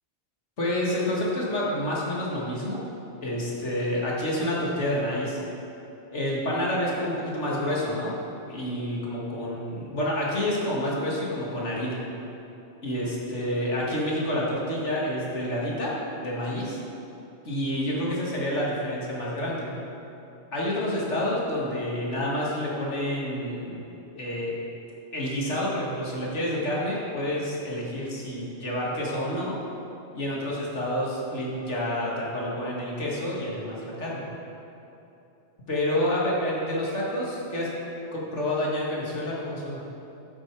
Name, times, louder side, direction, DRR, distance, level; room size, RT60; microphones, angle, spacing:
voice 1, 0.6-2.8 3.2-5.4 6.1-8.1 8.5-12.0 12.8-15.9 16.2-16.8 17.4-19.8 20.5-23.8 24.1-24.5 25.1-29.5 30.1-34.2 35.7-37.7 38.1-39.8, left 1 dB, 75° left, -5 dB, 2.6 m, -28 dB
12.5 x 9.4 x 4.8 m, 2.9 s
omnidirectional pair, 1.2 m